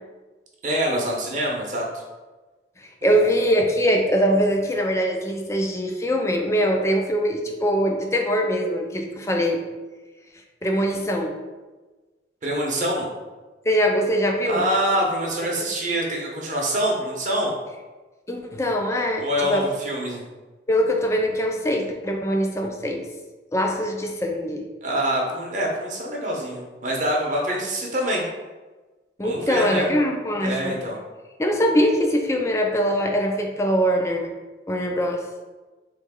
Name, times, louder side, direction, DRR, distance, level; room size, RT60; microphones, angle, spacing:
voice 1, 0.6-2.0 3.0-3.4 12.4-13.1 14.5-17.5 19.2-20.2 24.8-28.3 29.2-29.9 30.4-31.0, equal, 45° right, -1 dB, 0.8 m, -25 dB
voice 2, 2.8-9.6 10.6-11.4 13.7-14.6 18.3-19.7 20.7-23.0 23.5-24.7 29.2-30.8 31.4-34.4 34.7-35.2, equal, 15° left, 2 dB, 0.4 m, -22 dB
3.8 x 3.1 x 3.6 m, 1.2 s
head